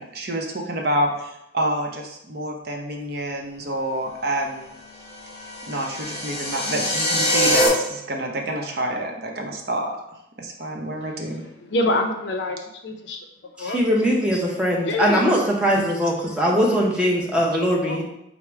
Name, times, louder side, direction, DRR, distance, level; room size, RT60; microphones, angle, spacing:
voice 1, 0.0-4.7 5.7-10.0 10.4-11.4, right 1 dB, 50° right, 1 dB, 0.6 m, -28 dB
sound 1, 5.1-7.7, equal, 35° left, 0.8 m, -23 dB
voice 2, 11.7-12.6 12.8-13.2 13.6-13.8 14.8-15.3 17.9-18.0, left 1 dB, 65° left, 4 dB, 0.5 m, -25 dB
voice 3, 13.6-18.0, equal, 5° right, -2 dB, 0.7 m, -21 dB
4.6 x 2.0 x 4.5 m, 0.84 s
head